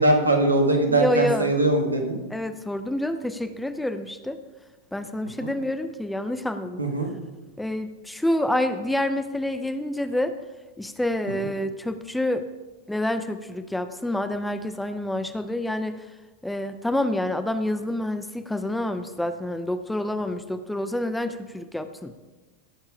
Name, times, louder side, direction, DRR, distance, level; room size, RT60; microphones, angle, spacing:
voice 1, 0.0-2.2 5.4-5.5 6.8-7.1, right 2 dB, 80° right, 3 dB, 1.8 m, -21 dB
voice 2, 0.9-1.5 2.3-4.4 4.9-6.8 7.6-10.4 10.8-12.5 12.9-16.0 16.4-22.2, left 1 dB, 5° left, 10 dB, 0.7 m, -28 dB
16.5 x 7.1 x 4.9 m, 1.2 s
figure-of-eight pair, 90°, 0 cm